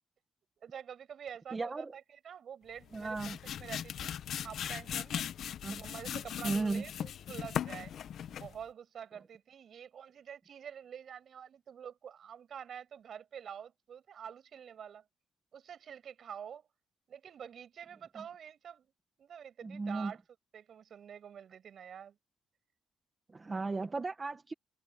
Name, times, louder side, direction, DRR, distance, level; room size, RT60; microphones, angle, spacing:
voice 1, 0.6-4.2 4.4-5.3 5.7-7.9 8.4-15.0 15.5-16.7 17.1-18.9 19.2-20.2 20.5-22.2, right 8 dB, 50° right, 7.9 m, -47 dB
voice 2, 1.5-1.9 2.9-3.4 5.6-5.8 6.4-6.8 19.6-20.1 23.3-24.5, right 3 dB, 20° right, 1.3 m, -35 dB
sound 1, 2.8-8.6, left 9 dB, 60° left, 0.8 m, -39 dB
cardioid pair, 150°, 0 cm